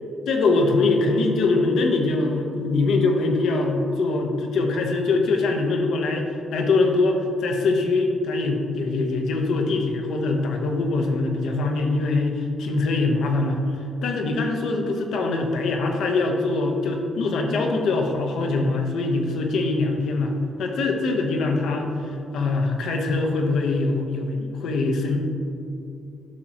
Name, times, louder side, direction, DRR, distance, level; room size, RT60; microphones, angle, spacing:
voice 1, 0.3-13.6 14.0-25.2, left 3 dB, 75° left, 3 dB, 1.0 m, -23 dB
10.5 x 6.1 x 3.0 m, 2.6 s
cardioid pair, 90°, 0 cm